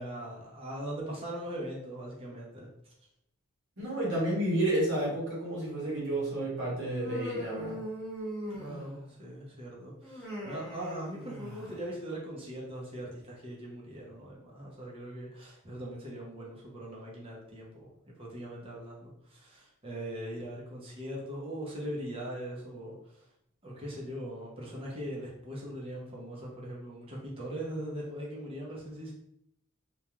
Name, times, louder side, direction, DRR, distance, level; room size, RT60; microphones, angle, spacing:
voice 1, 0.0-2.9 8.6-23.2 23.6-29.1, right 1 dB, 25° right, -4 dB, 0.7 m, -40 dB
voice 2, 3.8-7.8, right 1 dB, 55° right, -6 dB, 0.9 m, -30 dB
Human voice, 6.9-9.1 10.0-11.9, equal, ahead, 1.0 m, -40 dB
2.4 x 2.2 x 2.9 m, 0.77 s
head